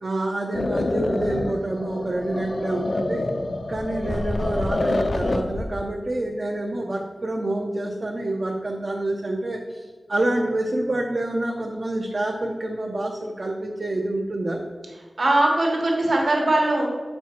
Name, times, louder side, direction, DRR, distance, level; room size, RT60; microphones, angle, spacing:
voice 1, 0.0-3.3 3.7-14.6, right 1 dB, 50° right, 0 dB, 0.7 m, -27 dB
sound 1, 0.5-5.7, left 2 dB, 50° left, 0.5 m, -27 dB
voice 2, 15.2-16.9, right 1 dB, 70° right, 0 dB, 1.4 m, -21 dB
7.2 x 4.4 x 4.4 m, 1.4 s
wide cardioid pair, 75°, 0 cm